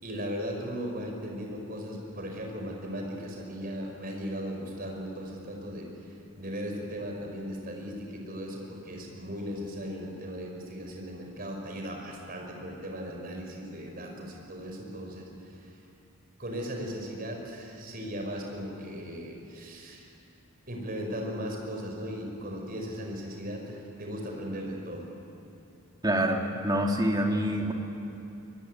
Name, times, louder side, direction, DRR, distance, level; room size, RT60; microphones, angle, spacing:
voice 1, 0.0-5.9 6.4-15.7 16.4-20.1 20.7-25.0, equal, 40° right, 1 dB, 5.0 m, -37 dB
voice 2, 26.0-27.7, right 1 dB, 20° right, 1 dB, 2.4 m, -26 dB
23.5 x 22.0 x 9.5 m, 2.8 s
head